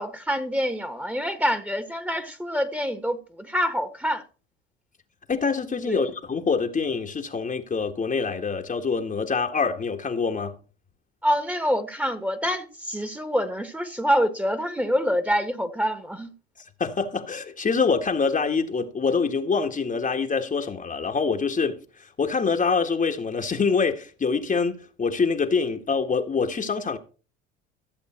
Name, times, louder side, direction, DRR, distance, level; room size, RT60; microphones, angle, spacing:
voice 1, 0.0-4.2 5.9-6.1 11.2-16.3, equal, 5° right, 1.7 m, -26 dB
voice 2, 5.3-10.5 16.8-27.0, left 5 dB, 25° left, 1.6 m, -25 dB
14.0 x 7.8 x 4.4 m
hypercardioid pair, 70°, 32 cm